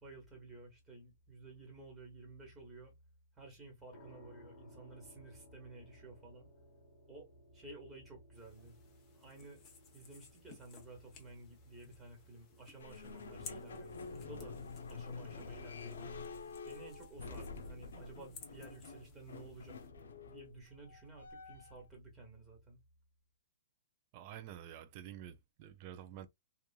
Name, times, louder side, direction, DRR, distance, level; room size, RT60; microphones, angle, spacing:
voice 1, 0.0-2.9 3.4-6.5 7.1-8.8 9.1-9.6 9.9-14.6 14.9-16.1 16.7-19.8 20.3-22.8, right 2 dB, 10° right, 1.6 m, -53 dB
sound 1, 3.9-18.8, equal, 50° left, 1.2 m, -63 dB
sound 2, 8.3-19.9, left 5 dB, 25° left, 0.9 m, -59 dB
sound 3, 12.8-21.9, left 4 dB, 80° left, 0.6 m, -48 dB
voice 2, 24.1-26.3, right 11 dB, 40° right, 0.5 m, -49 dB
2.9 x 2.5 x 2.3 m
hypercardioid pair, 140°, 0 cm